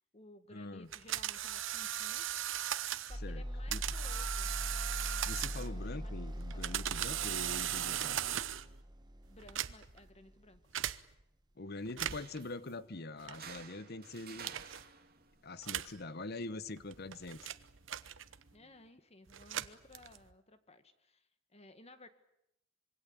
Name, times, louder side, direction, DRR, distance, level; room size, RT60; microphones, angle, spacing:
voice 1, 0.0-2.3 3.0-4.5 5.5-6.1 6.5-7.1 9.3-10.9 18.5-22.1, left 2 dB, 35° left, 10 dB, 1.7 m, -58 dB
voice 2, 0.5-0.9 3.2-3.4 3.7-3.8 5.3-8.2 11.6-14.5 15.4-17.5, left 2 dB, 55° left, 15 dB, 1.1 m, -44 dB
sound 1, 0.9-3.2 3.7-5.8 6.4-8.7 9.4-10.0 10.7-11.0 11.9-12.4 13.3-13.6 14.4-14.8 15.6-16.0 16.8-18.5 19.3-20.3, right 11 dB, 80° right, 1.0 m, -38 dB
sound 2, 3.1-11.2, equal, 20° right, 1.7 m, -42 dB
sound 3, 11.9-18.9, right 7 dB, 50° right, 2.5 m, -56 dB
26.0 x 23.5 x 8.6 m, 0.80 s
head